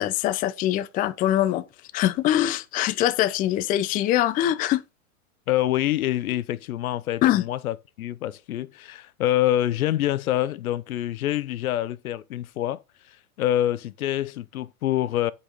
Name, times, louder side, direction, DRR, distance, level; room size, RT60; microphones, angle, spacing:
voice 1, 0.0-1.6 1.9-4.8 7.2-7.4, left 13 dB, 20° left, 0.5 m, -23 dB
voice 2, 5.5-12.8 13.4-15.3, left 13 dB, 75° left, 0.7 m, -26 dB
8.7 x 5.1 x 4.0 m
hypercardioid pair, 115°, 43 cm